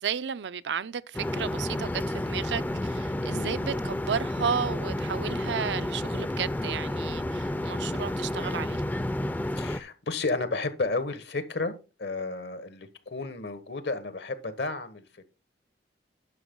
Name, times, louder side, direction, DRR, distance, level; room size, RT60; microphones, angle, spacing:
voice 1, 0.0-8.8, right 7 dB, 85° right, 0.5 m, -33 dB
sound 1, 1.1-9.8, left 1 dB, 10° left, 0.4 m, -31 dB
voice 2, 9.5-11.7 12.0-15.3, left 3 dB, 75° left, 1.3 m, -32 dB
11.0 x 6.3 x 3.7 m
head